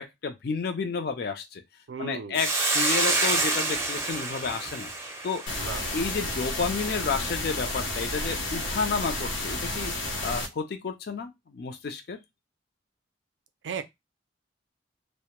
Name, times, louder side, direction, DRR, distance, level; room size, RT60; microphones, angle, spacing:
voice 1, 0.0-1.6 2.0-4.9 5.2-5.4 5.9-9.9 10.2-12.2, left 4 dB, 55° left, 0.4 m, -31 dB
voice 2, 1.9-2.4 5.5-5.9 13.6-13.8, right 6 dB, 70° right, 0.4 m, -35 dB
Hiss, 2.3-6.9, right 2 dB, 15° right, 0.5 m, -28 dB
sound 1, 5.5-10.5, left 2 dB, 85° left, 0.7 m, -31 dB
2.1 x 2.0 x 2.9 m
head